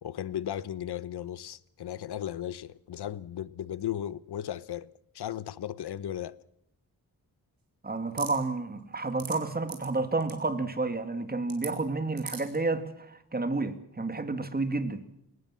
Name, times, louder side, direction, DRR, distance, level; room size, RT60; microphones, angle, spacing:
voice 1, 0.0-4.9 5.1-6.4, left 11 dB, 85° left, 0.9 m, -36 dB
voice 2, 7.8-15.0, right 3 dB, 25° right, 2.0 m, -30 dB
sound 1, 8.2-8.4 9.0-9.4 9.7-9.9 10.2-10.4 11.5-11.7 12.2-12.6, right 6 dB, 60° right, 4.2 m, -39 dB
22.0 x 19.5 x 7.5 m
wide cardioid pair, 150°, 39 cm